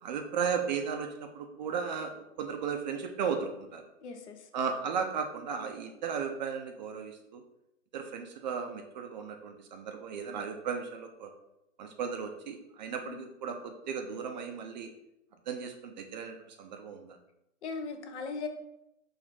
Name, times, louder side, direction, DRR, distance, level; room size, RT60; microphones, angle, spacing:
voice 1, 0.0-3.9 4.5-7.4 7.9-11.3 11.8-14.9 15.5-17.2, right 6 dB, 35° right, 5 dB, 0.4 m, -35 dB
voice 2, 4.0-4.5 13.0-13.3 17.6-18.5, left 4 dB, 55° left, 6 dB, 0.8 m, -38 dB
4.2 x 2.5 x 4.5 m, 0.86 s
hypercardioid pair, 125°, 40 cm